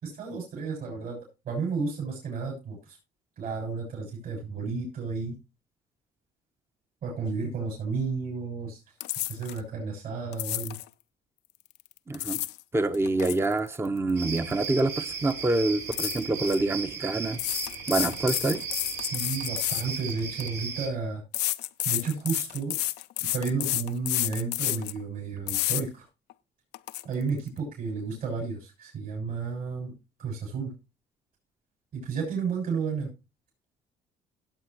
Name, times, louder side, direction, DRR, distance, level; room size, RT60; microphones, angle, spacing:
voice 1, 0.0-1.2 1.4-3.0 3.4-5.3 7.0-8.8 9.2-10.8 19.1-21.2 21.8-22.8 23.2-26.1 27.0-29.9 30.2-30.7 31.9-33.1, right 4 dB, 60° right, 6.8 m, -32 dB
sound 1, 9.0-9.6 10.3-10.9 11.9-12.6 12.9-14.8 15.1-15.3 15.9-16.6 17.3-20.5 21.3-25.0 25.5-25.8 26.3-26.4 26.7-27.0, left 16 dB, 80° left, 0.6 m, -30 dB
voice 2, 12.1-12.4 12.7-17.4 17.9-18.6, right 2 dB, 15° right, 0.9 m, -26 dB
sound 2, 14.2-20.9, right 5 dB, 80° right, 4.7 m, -36 dB
17.5 x 8.0 x 3.0 m
cardioid pair, 110°, 17 cm